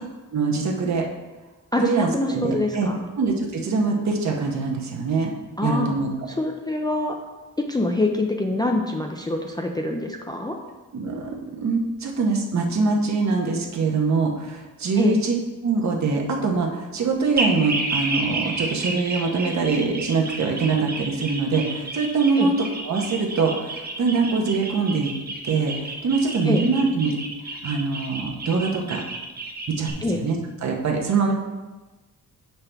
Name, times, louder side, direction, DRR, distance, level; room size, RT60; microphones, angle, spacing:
voice 1, 0.3-1.0 1.8-2.9 3.2-5.3 5.6-6.1 10.9-15.3 15.6-25.1 25.4-27.1 27.6-29.0 29.7-31.3, right 4 dB, 55° right, 1 dB, 1.1 m, -23 dB
voice 2, 1.7-3.1 5.6-5.9 6.3-7.2 7.6-10.6 15.0-15.2 22.4-22.5 26.4-26.6 30.0-30.2, left 2 dB, 15° left, 1 dB, 0.4 m, -25 dB
sound 1, 17.4-29.9, right 2 dB, 30° right, 0.7 m, -31 dB
7.2 x 5.8 x 3.4 m, 1.2 s
wide cardioid pair, 175°, 33 cm